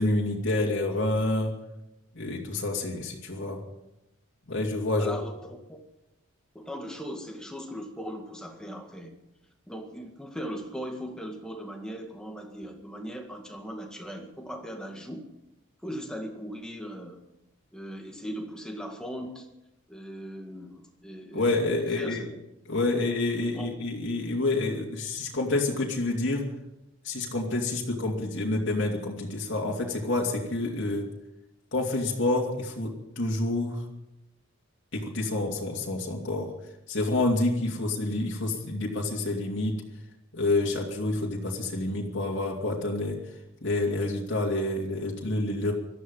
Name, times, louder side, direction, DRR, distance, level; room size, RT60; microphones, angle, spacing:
voice 1, 0.0-1.6 2.1-3.6 4.5-5.2 21.3-22.2 22.7-26.5 27.0-31.1 31.7-33.8 34.9-36.5 36.9-39.8 40.3-43.2 43.6-45.7, left 2 dB, 60° left, -2 dB, 2.7 m, -28 dB
voice 2, 5.0-5.8 6.5-9.2 9.7-15.2 15.8-17.2 17.7-19.5 19.9-22.3 22.9-23.0 23.4-23.7 37.7-37.9, equal, 5° left, 2 dB, 2.0 m, -39 dB
18.0 x 13.0 x 5.6 m, 0.90 s
head